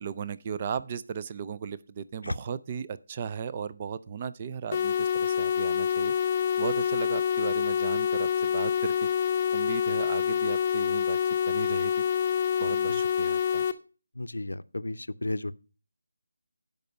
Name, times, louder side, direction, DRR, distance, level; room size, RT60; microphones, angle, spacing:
voice 1, 0.0-6.1 6.6-9.1 9.5-11.2 11.5-12.0 12.6-13.7, right 7 dB, 25° right, 0.4 m, -36 dB
sound 1, 4.7-13.7, left 8 dB, 25° left, 0.7 m, -26 dB
voice 2, 14.2-15.5, left 2 dB, 90° left, 0.6 m, -33 dB
12.5 x 5.3 x 5.1 m
figure-of-eight pair, 170°, 0 cm